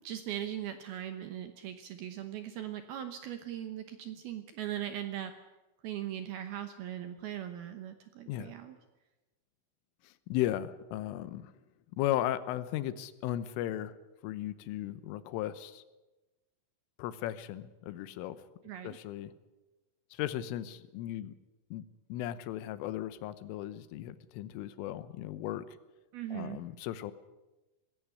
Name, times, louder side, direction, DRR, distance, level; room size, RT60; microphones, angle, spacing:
voice 1, 0.0-5.3 5.8-8.8 18.6-19.0 26.1-26.6, right 11 dB, 75° right, 8 dB, 2.4 m, -39 dB
voice 2, 10.1-11.5 12.0-13.9 14.2-15.8 17.0-18.4 18.9-19.3 20.1-21.3 21.7-21.8 22.1-25.6 26.3-27.1, left 13 dB, 90° left, 14 dB, 3.5 m, -36 dB
19.5 x 16.5 x 9.9 m, 1.1 s
omnidirectional pair, 5.6 m